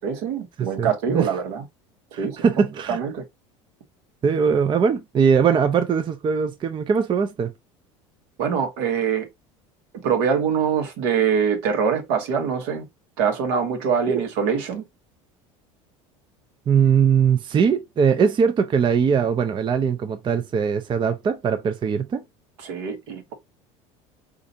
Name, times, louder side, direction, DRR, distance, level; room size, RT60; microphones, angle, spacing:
voice 1, 0.0-1.6 2.2-2.5 2.9-3.2 8.4-9.3 10.0-12.9 13.2-14.8 22.6-23.3, right 6 dB, 75° right, 1.1 m, -24 dB
voice 2, 0.6-1.3 2.1-3.0 4.2-7.5 14.1-14.2 16.7-22.2, right 6 dB, 30° right, 0.5 m, -21 dB
4.0 x 2.5 x 2.7 m
hypercardioid pair, 85°, 16 cm